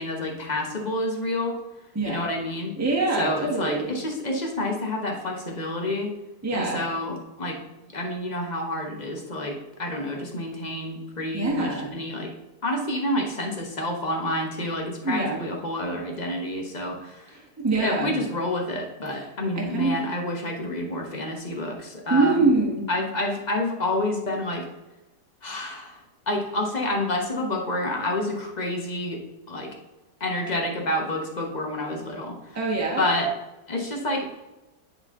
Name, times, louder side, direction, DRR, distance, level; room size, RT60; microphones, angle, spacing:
voice 1, 0.0-1.6 2.0-2.7 3.2-6.1 6.5-7.6 7.9-12.3 12.6-17.4 17.8-22.5 22.9-24.7 25.4-26.0 26.3-29.2 29.5-29.7 30.2-32.6 33.0-33.3 33.7-34.3, left 1 dB, 35° left, 1 dB, 0.9 m, -28 dB
voice 2, 2.8-3.9 6.4-6.8 11.3-11.9 15.0-15.5 17.3-18.2 19.1-19.3 19.5-20.0 22.1-22.9 32.5-33.1, right 3 dB, 10° right, -2 dB, 1.0 m, -24 dB
10.0 x 3.7 x 3.6 m, 1.0 s
omnidirectional pair, 1.7 m